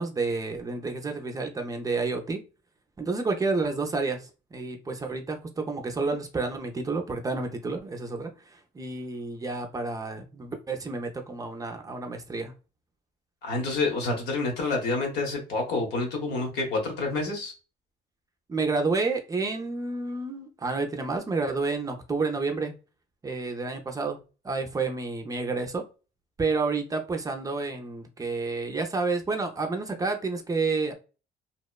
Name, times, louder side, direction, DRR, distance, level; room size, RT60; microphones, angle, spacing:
voice 1, 0.0-2.4 3.0-8.3 8.7-12.5 18.5-22.7 23.2-24.2 24.4-25.8 26.4-30.9, right 3 dB, 20° right, 0.4 m, -30 dB
voice 2, 13.4-17.5, left 3 dB, 80° left, 1.0 m, -28 dB
2.8 x 2.1 x 2.2 m
cardioid pair, 110°, 17 cm